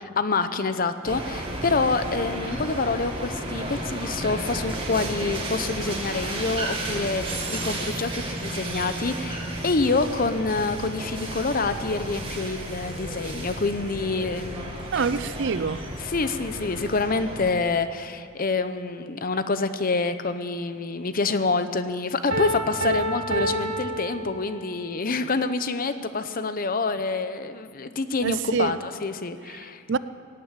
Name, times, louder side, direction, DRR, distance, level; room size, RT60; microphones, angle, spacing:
voice 1, 0.2-14.7 16.0-29.8, left 3 dB, 40° left, 11 dB, 0.7 m, -27 dB
sound 1, 1.0-17.5, right 1 dB, 25° right, 2.1 m, -33 dB
sound 2, 9.4-16.9, left 1 dB, 90° left, 1.5 m, -42 dB
voice 2, 14.9-15.8 28.2-28.8 29.9-30.0, right 5 dB, 55° right, 15 dB, 0.4 m, -25 dB
Piano, 22.3-24.9, right 1 dB, 80° right, 2.0 m, -28 dB
17.0 x 9.2 x 8.9 m, 2.2 s
head